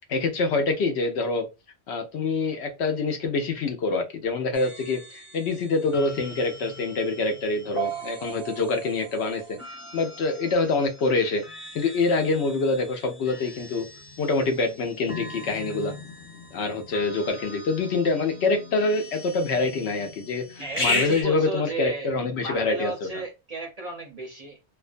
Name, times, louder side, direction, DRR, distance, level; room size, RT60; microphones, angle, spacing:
voice 1, 0.1-1.5 1.9-9.6 9.9-11.4 11.7-13.9 14.2-15.9 16.5-23.1, left 3 dB, 75° left, 0.8 m, -25 dB
sound 1, 4.5-21.2, left 1 dB, 30° left, 0.8 m, -37 dB
voice 2, 20.6-24.7, right 3 dB, 50° right, 0.5 m, -34 dB
2.4 x 2.2 x 2.4 m
omnidirectional pair, 1.2 m